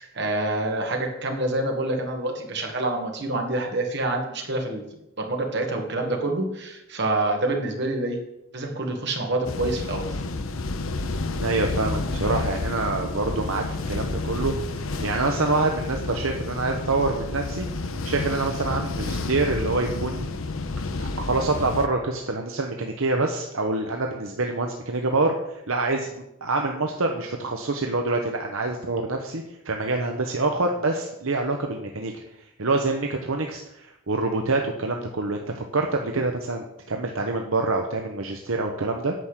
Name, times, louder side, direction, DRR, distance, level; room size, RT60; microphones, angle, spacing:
voice 1, 0.0-4.8 5.2-8.2 8.5-10.0, right 2 dB, 55° right, 2 dB, 2.1 m, -27 dB
sound 1, 9.4-21.9, left 3 dB, 75° left, 0.9 m, -30 dB
voice 2, 11.4-17.7 18.0-20.3 21.0-26.1 26.4-32.2 32.6-39.1, right 3 dB, 75° right, 3 dB, 1.0 m, -26 dB
9.5 x 6.1 x 8.2 m, 0.85 s
head